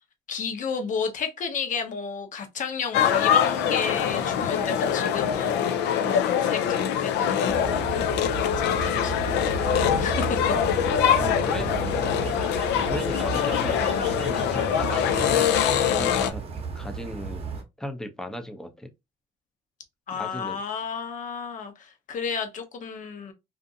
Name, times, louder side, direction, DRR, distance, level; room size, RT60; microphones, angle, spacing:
voice 1, 0.3-5.7 6.1-7.6 8.6-10.4 20.1-23.3, left 6 dB, 50° left, 0.8 m, -32 dB
sound 1, 2.9-16.3, left 9 dB, 80° left, 0.4 m, -24 dB
sound 2, 7.5-17.6, right 4 dB, 35° right, 0.8 m, -33 dB
voice 2, 11.2-12.1 12.9-15.6 15.9-16.4 16.7-17.5 17.8-18.9 20.1-20.6, equal, 5° left, 0.6 m, -36 dB
2.6 x 2.5 x 2.6 m
cardioid pair, 110°, 17 cm